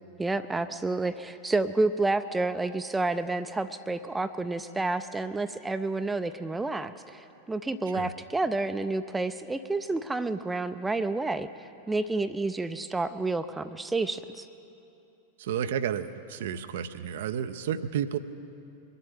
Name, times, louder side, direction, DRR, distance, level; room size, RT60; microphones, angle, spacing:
voice 1, 0.2-14.5, right 3 dB, 10° right, 10 dB, 0.5 m, -30 dB
voice 2, 15.4-18.2, right 9 dB, 55° right, 11 dB, 0.5 m, -31 dB
22.0 x 7.8 x 7.2 m, 2.8 s
figure-of-eight pair, 90°, 0 cm